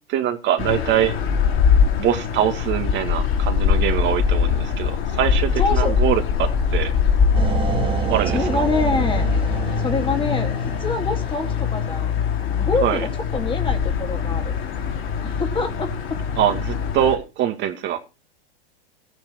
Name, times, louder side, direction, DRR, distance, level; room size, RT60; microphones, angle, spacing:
voice 1, 0.1-1.2 2.0-6.9 8.1-8.4 12.8-13.0 16.4-18.0, right 11 dB, 35° right, 2.2 m, -23 dB
sound 1, 0.6-17.2, left 6 dB, 40° left, 4.0 m, -22 dB
voice 2, 5.6-6.0 8.3-9.3 9.8-12.1 12.6-14.5 15.2-16.2, left 3 dB, 15° left, 2.5 m, -26 dB
sound 2, 7.3-12.1, right 6 dB, 15° right, 1.7 m, -28 dB
15.5 x 10.0 x 4.6 m
hypercardioid pair, 120°, 31 cm